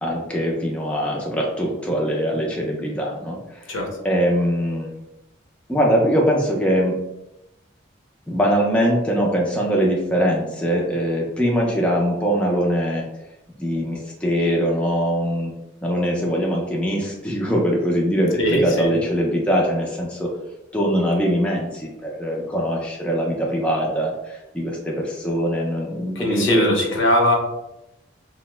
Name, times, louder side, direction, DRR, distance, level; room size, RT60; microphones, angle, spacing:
voice 1, 0.0-3.8 4.0-5.0 5.7-7.0 8.3-13.0 13.6-15.5 15.8-20.3 20.7-26.7, equal, 5° left, -3 dB, 0.3 m, -22 dB
voice 2, 18.4-18.9 26.2-27.3, left 1 dB, 75° left, 0 dB, 0.7 m, -20 dB
2.7 x 2.0 x 3.2 m, 0.92 s
head